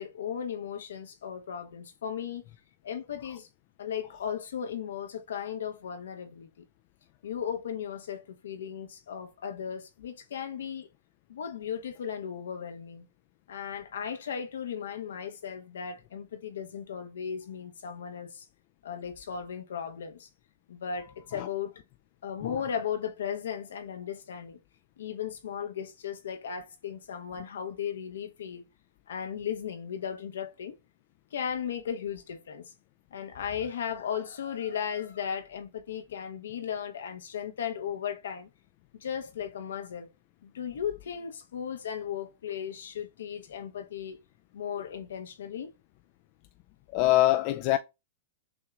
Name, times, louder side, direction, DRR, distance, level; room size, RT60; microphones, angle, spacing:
voice 1, 0.0-2.4 2.8-3.5 3.8-6.7 7.2-10.9 11.3-13.1 13.5-18.5 18.8-20.3 20.7-21.7 22.2-24.6 25.0-28.6 29.1-30.8 31.3-32.6 33.1-38.5 39.0-40.1 40.4-44.2 44.5-45.7, left 8 dB, 85° left, 0.8 m, -36 dB
voice 2, 46.9-47.8, left 15 dB, 45° left, 0.3 m, -24 dB
6.2 x 2.9 x 2.4 m
hypercardioid pair, 125°, 0 cm